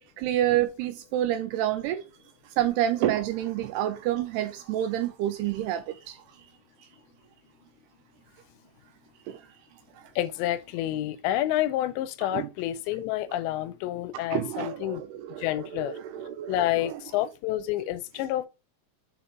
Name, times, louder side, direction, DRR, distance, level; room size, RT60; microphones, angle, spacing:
voice 1, 0.2-2.0 2.6-6.2 9.3-9.4 12.3-12.5 14.3-17.0, right 12 dB, 85° right, 2.4 m, -28 dB
voice 2, 10.2-15.0 15.4-15.9 16.5-18.5, left 13 dB, 85° left, 2.8 m, -29 dB
7.3 x 4.4 x 5.1 m
omnidirectional pair, 5.2 m